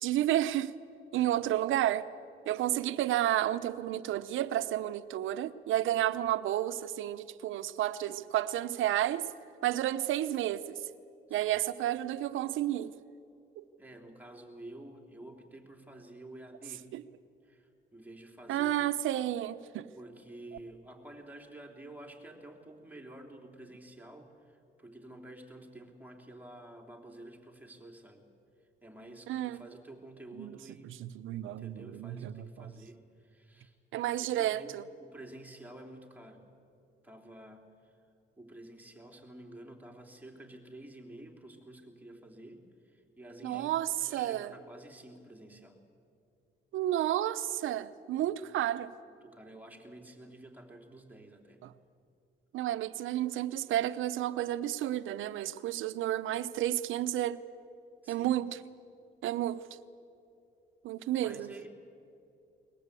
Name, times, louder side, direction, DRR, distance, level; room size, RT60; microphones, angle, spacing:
voice 1, 0.0-0.7 1.1-2.1 2.5-9.3 9.6-10.8 11.3-12.9 13.6-13.7 16.9-17.0 18.5-19.9 29.3-29.6 30.3-30.6 30.8-32.7 33.9-34.8 43.4-44.5 46.7-48.9 51.6-51.7 52.5-57.4 58.1-58.6 59.2-59.6 60.8-61.5, right 13 dB, 80° right, 0.8 m, -31 dB
voice 2, 11.3-11.6 13.8-16.9 17.4-18.9 19.2-19.3 20.0-28.3 28.8-31.0 31.3-33.8 34.2-34.7 35.0-36.4 37.0-37.9 38.4-43.7 44.0-45.8 48.2-48.3 49.1-51.6 55.7-55.8 58.0-58.4 61.0-61.7, right 1 dB, 10° right, 3.5 m, -50 dB
22.0 x 20.5 x 8.4 m
cardioid pair, 90°, 20 cm